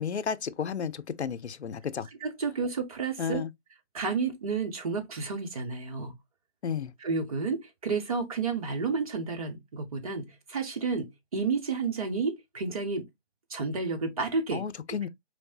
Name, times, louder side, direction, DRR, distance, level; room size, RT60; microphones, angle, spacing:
voice 1, 0.0-2.1 3.2-3.5 6.6-6.9 14.5-15.1, left 7 dB, 65° left, 0.6 m, -32 dB
voice 2, 2.2-3.4 3.9-6.1 7.0-13.0 13.5-14.6, right 4 dB, 30° right, 0.9 m, -31 dB
4.6 x 3.2 x 2.7 m
figure-of-eight pair, 145°, 35 cm